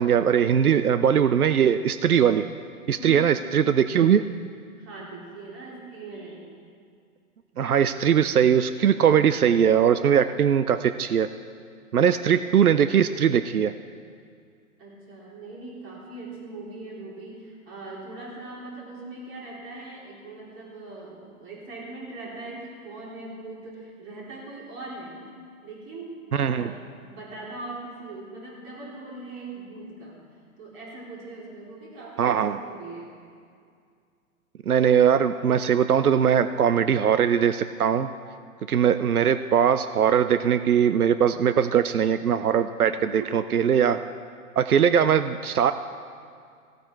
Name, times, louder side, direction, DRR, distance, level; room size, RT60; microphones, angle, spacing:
voice 1, 0.0-2.4 2.9-4.2 7.6-11.3 11.9-13.7 26.4-26.7 32.2-32.6 34.7-38.1 38.7-44.0 44.6-45.7, right 8 dB, 90° right, 11 dB, 0.6 m, -20 dB
voice 2, 2.9-3.4 4.8-6.4 14.8-25.2 25.6-30.2 30.6-33.1 42.9-43.5, right 2 dB, 30° right, -4 dB, 3.7 m, -40 dB
16.5 x 8.6 x 4.7 m, 2.2 s
figure-of-eight pair, 125°, 43 cm